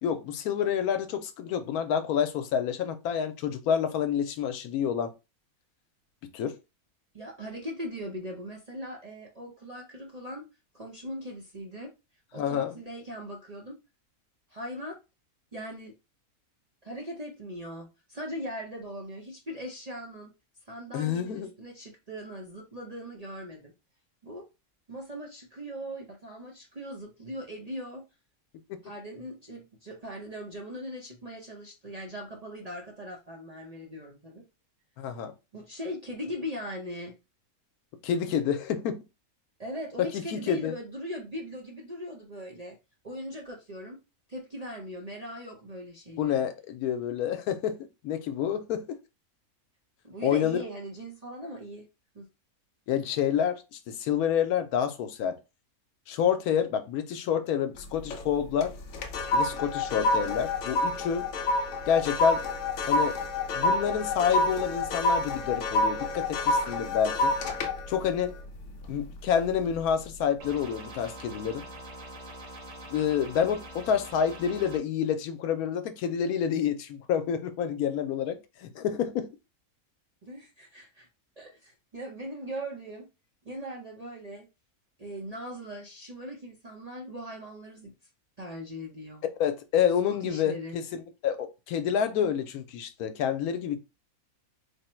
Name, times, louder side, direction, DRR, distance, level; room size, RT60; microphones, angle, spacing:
voice 1, 0.0-5.1 6.3-6.5 12.4-12.7 20.9-21.5 35.0-35.3 38.0-39.0 40.0-40.7 46.2-49.0 50.2-50.6 52.9-55.4 56.1-58.7 59.3-61.3 61.9-62.4 62.9-63.1 63.5-67.3 67.9-68.3 68.9-71.7 72.9-79.3 89.4-93.8, left 8 dB, 90° left, 1.1 m, -28 dB
voice 2, 7.1-10.5 10.7-11.9 12.3-13.8 14.5-15.0 15.5-15.9 16.8-20.3 20.6-23.7 24.2-24.5 24.9-28.1 28.8-34.5 35.5-37.1 39.6-42.8 43.0-44.0 44.3-46.5 50.0-51.9 52.1-52.3 80.2-81.1 81.4-83.1 83.4-84.5 85.0-87.9 88.4-89.2 90.1-90.8, equal, 45° right, 0.5 m, -40 dB
sound 1, 57.8-58.3 58.6-69.2 69.6-69.9, left 2 dB, 65° left, 0.8 m, -28 dB
sound 2, 70.4-74.8, right 1 dB, 60° right, 1.3 m, -44 dB
3.5 x 2.0 x 4.3 m
omnidirectional pair, 1.5 m